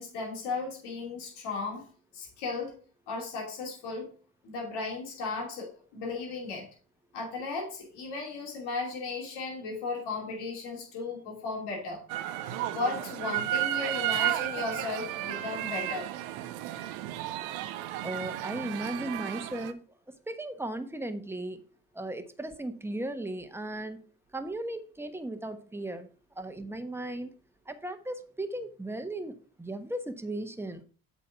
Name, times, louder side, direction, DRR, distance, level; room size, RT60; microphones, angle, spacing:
voice 1, 0.0-1.9 2.1-2.7 3.1-4.1 4.4-6.7 7.1-12.0 12.7-16.1, left 3 dB, 75° left, -1 dB, 2.7 m, -35 dB
sound 1, 12.1-19.7, right 13 dB, 90° right, 0.6 m, -33 dB
voice 2, 18.0-19.8 20.3-21.6 21.9-24.0 24.3-26.1 26.3-27.3 27.6-30.8, right 1 dB, 5° right, 8 dB, 1.2 m, -36 dB
7.9 x 4.2 x 5.7 m, 0.40 s
hypercardioid pair, 50°, 40 cm